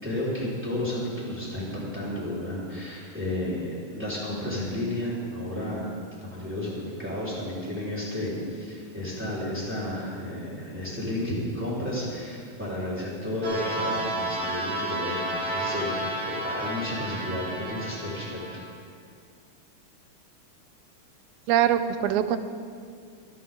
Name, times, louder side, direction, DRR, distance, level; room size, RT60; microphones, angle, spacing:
voice 1, 0.0-5.9 6.2-18.4, left 1 dB, 5° right, -9 dB, 4.1 m, -32 dB
sound 1, 13.4-18.6, right 1 dB, 50° right, 2.9 m, -31 dB
voice 2, 21.5-22.4, right 10 dB, 85° right, 11 dB, 2.0 m, -22 dB
26.5 x 9.4 x 3.9 m, 2.2 s
omnidirectional pair, 3.5 m